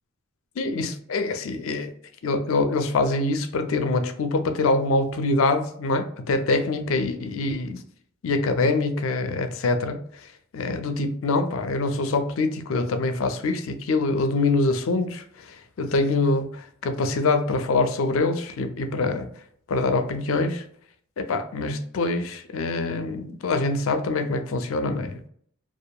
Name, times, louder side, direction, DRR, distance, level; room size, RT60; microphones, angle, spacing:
voice 1, 0.6-1.9 2.2-7.8 8.2-10.0 10.5-19.3 19.7-20.6 21.2-25.2, left 3 dB, 70° left, 8 dB, 0.4 m, -24 dB
2.7 x 2.4 x 2.2 m, 0.63 s
head